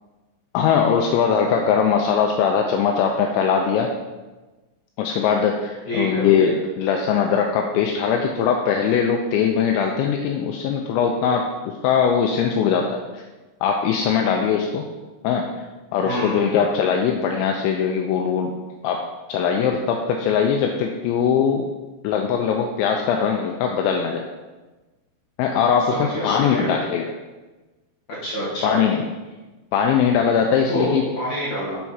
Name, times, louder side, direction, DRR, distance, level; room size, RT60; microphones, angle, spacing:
voice 1, 0.5-3.9 5.0-11.5 11.8-13.2 13.6-14.9 15.2-15.5 15.9-18.5 18.8-21.7 22.0-24.3 25.4-27.1 28.6-29.0 29.7-31.0, left 7 dB, 85° left, 2 dB, 2.7 m, -21 dB
voice 2, 5.9-6.3 16.0-16.6 25.8-26.7 28.2-28.7 30.7-31.8, equal, 55° left, -8 dB, 2.1 m, -27 dB
7.3 x 4.5 x 5.6 m, 1.2 s
omnidirectional pair, 5.7 m